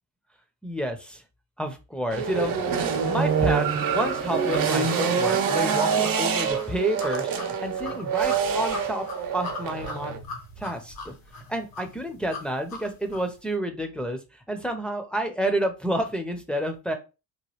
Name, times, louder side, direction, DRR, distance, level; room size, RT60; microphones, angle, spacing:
voice 1, 0.6-1.2 1.6-2.5 3.1-9.1 9.3-10.1 10.6-11.1 11.5-14.2 14.5-16.9, right 1 dB, 5° left, 4 dB, 0.6 m, -29 dB
sound 1, 2.1-10.2, right 6 dB, 60° right, 0.8 m, -25 dB
sound 2, 3.3-13.3, left 3 dB, 65° left, 1.3 m, -41 dB
3.0 x 2.2 x 3.0 m, 0.29 s
cardioid pair, 90°, 39 cm